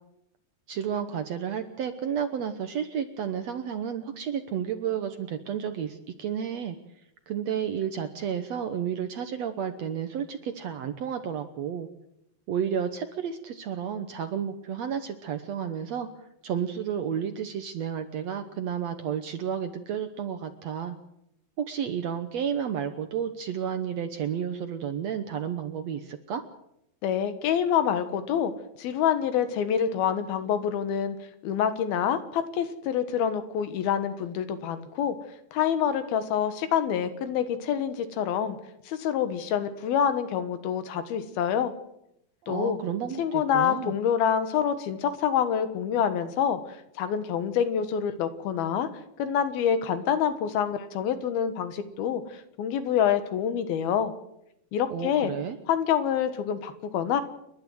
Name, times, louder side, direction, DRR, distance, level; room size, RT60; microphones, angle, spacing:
voice 1, 0.7-6.8 7.3-11.9 12.5-16.1 16.4-21.0 21.6-26.4 42.4-43.9 54.9-55.6, right 8 dB, 65° right, 8 dB, 1.7 m, -31 dB
voice 2, 27.0-28.5 28.8-31.2 31.4-35.2 35.5-38.6 38.9-41.7 42.5-42.8 43.2-46.6 47.0-48.9 49.2-54.1 54.7-55.3 55.7-57.2, left 8 dB, 90° left, 11 dB, 3.3 m, -26 dB
29.5 x 11.5 x 7.9 m, 0.80 s
omnidirectional pair, 4.2 m